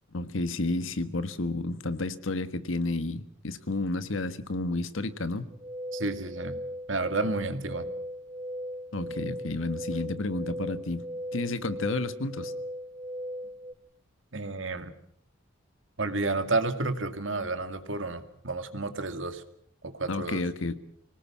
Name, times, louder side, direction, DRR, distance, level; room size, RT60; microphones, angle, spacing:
voice 1, 0.1-5.5 8.9-11.0 11.3-12.5 20.1-20.8, left 2 dB, 80° left, 12 dB, 1.5 m, -31 dB
sound 1, 5.5-13.7, equal, 20° right, 1.2 m, -38 dB
voice 2, 5.9-6.6 6.9-7.9 14.3-14.9 16.0-19.4 19.8-20.4, right 3 dB, 70° right, 8 dB, 2.3 m, -31 dB
25.5 x 18.5 x 7.4 m, 0.65 s
head